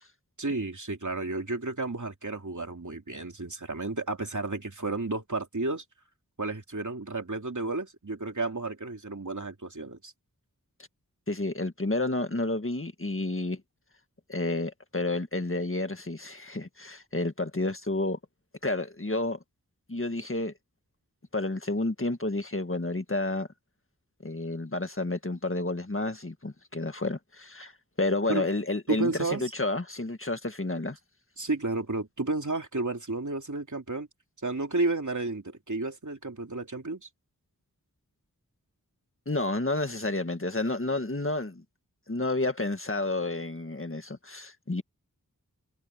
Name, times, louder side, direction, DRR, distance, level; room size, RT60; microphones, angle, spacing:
voice 1, 0.4-5.8 6.4-10.1 28.3-28.5 28.9-29.4 31.4-34.1 34.4-37.1, right 3 dB, 60° right, 3.0 m, -32 dB
voice 2, 11.3-13.6 14.3-18.2 18.6-19.4 19.9-20.5 21.3-23.5 24.2-27.7 28.0-31.0 39.3-41.6 42.1-44.8, left 2 dB, 40° left, 1.8 m, -30 dB
wide cardioid pair, 45°, 34 cm